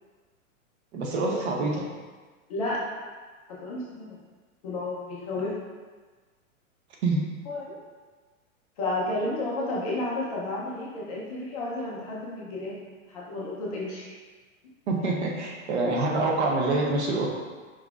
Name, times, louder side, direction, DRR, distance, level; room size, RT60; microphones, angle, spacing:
voice 1, 0.9-1.8 7.0-7.2 14.9-17.3, right 2 dB, 50° right, 0 dB, 0.8 m, -26 dB
voice 2, 2.5-2.8 3.6-4.2 4.6-5.5 7.5-7.7 8.8-14.2, left 2 dB, 25° left, -6 dB, 0.5 m, -32 dB
4.7 x 3.8 x 2.4 m, 1.4 s
hypercardioid pair, 165°, 42 cm